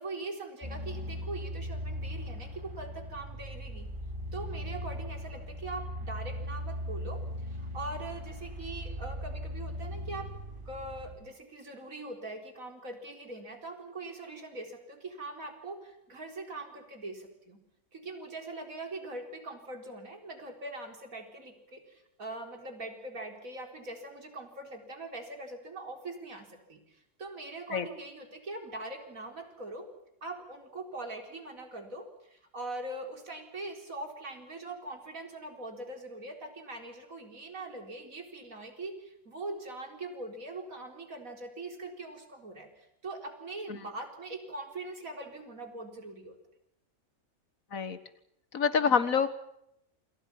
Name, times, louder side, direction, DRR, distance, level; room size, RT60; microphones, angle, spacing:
voice 1, 0.0-3.9 4.3-10.3 10.6-17.6 17.9-29.9 30.2-46.4 48.8-49.0, right 2 dB, 80° right, 4 dB, 4.7 m, -42 dB
sound 1, 0.6-11.2, equal, 20° right, 8.1 m, -39 dB
voice 2, 48.5-49.3, left 6 dB, 80° left, 12 dB, 1.9 m, -26 dB
28.0 x 27.5 x 5.9 m, 0.78 s
omnidirectional pair, 1.4 m